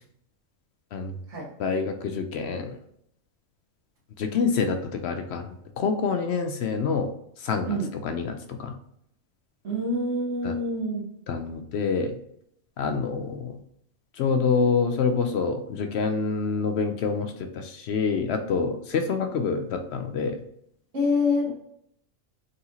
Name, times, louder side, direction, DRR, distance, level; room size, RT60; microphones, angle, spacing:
voice 1, 1.6-2.8 4.2-7.1 7.4-7.7 8.0-8.7 10.4-10.6 11.3-12.1 12.8-13.6 14.2-20.4, left 5 dB, 65° left, 6 dB, 0.7 m, -26 dB
voice 2, 9.6-11.0 20.9-21.5, left 2 dB, 65° right, -9 dB, 1.7 m, -26 dB
4.0 x 3.8 x 2.8 m, 0.72 s
omnidirectional pair, 1.3 m